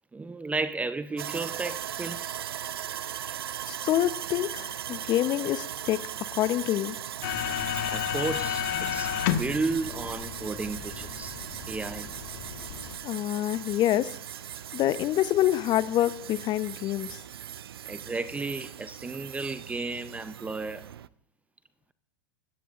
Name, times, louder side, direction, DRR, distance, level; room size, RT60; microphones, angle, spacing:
voice 1, 0.1-2.3 3.3-3.4 7.8-11.3 11.7-12.1 17.9-20.9, right 3 dB, 10° right, 0.7 m, -33 dB
Sawing, 1.2-21.1, right 10 dB, 75° right, 0.6 m, -39 dB
voice 2, 3.7-6.0 6.3-7.0 13.0-14.1 14.7-17.2, left 13 dB, 35° left, 0.9 m, -26 dB
sound 1, 7.2-13.0, left 11 dB, 55° left, 1.6 m, -32 dB
22.0 x 17.0 x 2.6 m
hypercardioid pair, 100°, 13 cm